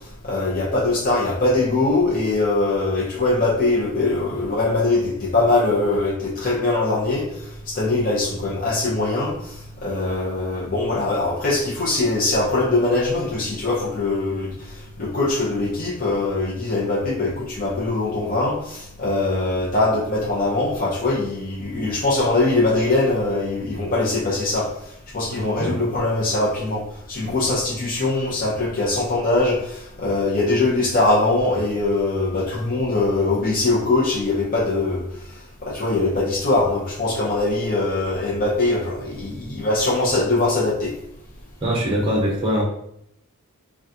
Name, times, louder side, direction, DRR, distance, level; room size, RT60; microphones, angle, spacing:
voice 1, 0.2-24.7 25.1-35.0 35.6-40.9, left 2 dB, 40° left, -7 dB, 0.7 m, -22 dB
voice 2, 25.4-25.7 41.6-42.6, equal, 25° right, -3 dB, 0.6 m, -22 dB
3.8 x 2.3 x 2.7 m, 0.74 s
head